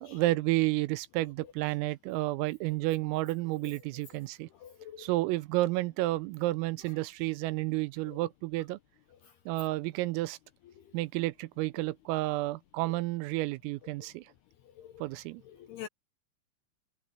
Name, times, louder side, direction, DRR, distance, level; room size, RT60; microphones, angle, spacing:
voice 1, 0.0-4.5 5.0-8.8 9.5-10.4 10.9-14.3 15.0-15.4, right 18 dB, 90° right, 3.5 m, -31 dB
voice 2, 4.6-5.1 8.1-8.2 10.8-10.9 14.8-15.0 15.5-15.9, left 10 dB, 75° left, 2.4 m, -46 dB
omnidirectional pair, 5.9 m